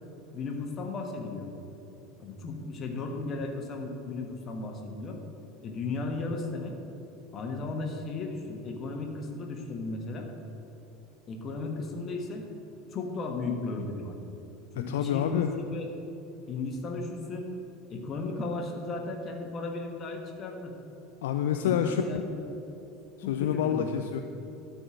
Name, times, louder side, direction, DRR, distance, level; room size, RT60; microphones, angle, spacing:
voice 1, 0.3-1.5 2.2-5.2 5.6-6.8 7.3-10.3 11.3-12.5 12.9-14.1 14.7-15.9 16.5-17.5 17.9-20.8 21.6-22.6 23.2-23.9, left 3 dB, 35° left, 2 dB, 1.5 m, -35 dB
voice 2, 14.9-15.5 21.2-22.0 23.3-24.2, left 9 dB, 65° left, 6 dB, 0.4 m, -27 dB
12.5 x 4.4 x 7.4 m, 2.9 s
figure-of-eight pair, 75°, 0 cm